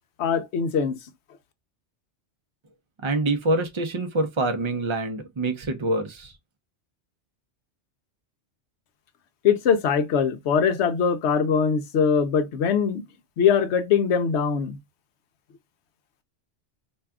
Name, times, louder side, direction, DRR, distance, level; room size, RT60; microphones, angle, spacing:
voice 1, 0.2-1.0 9.4-13.0 13.4-14.8, left 6 dB, 75° left, 0.9 m, -22 dB
voice 2, 3.0-6.3, right 2 dB, 35° right, 0.5 m, -25 dB
2.7 x 2.3 x 3.4 m
omnidirectional pair, 1.2 m